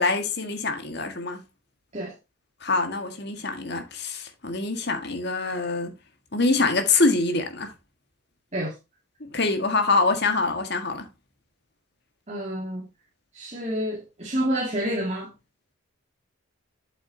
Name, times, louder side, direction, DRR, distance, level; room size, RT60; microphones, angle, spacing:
voice 1, 0.0-1.4 2.6-5.9 6.3-7.7 9.3-11.0, left 3 dB, 50° left, 1.7 m, -24 dB
voice 2, 12.3-12.9 13.3-15.3, equal, 35° right, 2.4 m, -28 dB
8.4 x 8.0 x 2.8 m
head